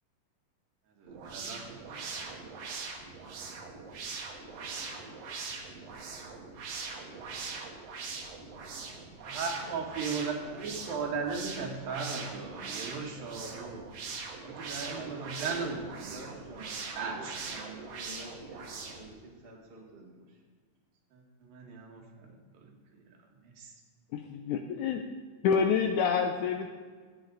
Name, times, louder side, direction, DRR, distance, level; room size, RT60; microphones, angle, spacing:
voice 1, 1.0-2.0 9.2-13.9 14.4-16.2 17.0-17.4 21.1-22.3 22.6-22.7 23.6-23.7, right 5 dB, 80° right, 1 dB, 3.2 m, -37 dB
sound 1, 1.1-19.1, right 4 dB, 60° right, 1.9 m, -41 dB
voice 2, 14.8-16.8 17.1-20.3, right 2 dB, 30° right, -2 dB, 1.1 m, -48 dB
voice 3, 24.1-25.0 25.4-26.7, left 6 dB, 80° left, 5 dB, 1.8 m, -27 dB
15.0 x 8.7 x 3.9 m, 1.6 s
omnidirectional pair, 4.0 m